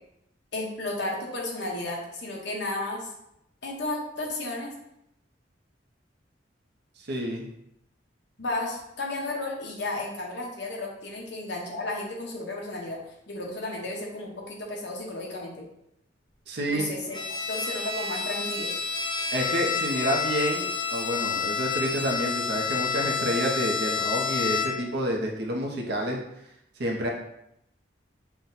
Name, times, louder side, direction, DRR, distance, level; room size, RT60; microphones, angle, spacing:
voice 1, 0.5-3.1 3.6-4.7 8.4-13.0 13.3-15.7 16.7-17.2 17.5-18.7, left 2 dB, 65° left, -1 dB, 1.1 m, -33 dB
voice 2, 7.1-7.4 16.5-16.9 19.3-26.2 26.8-27.1, equal, 60° right, 0 dB, 0.7 m, -29 dB
Bowed string instrument, 17.1-25.0, left 5 dB, 25° left, 0.5 m, -29 dB
5.8 x 2.2 x 4.0 m, 0.79 s
head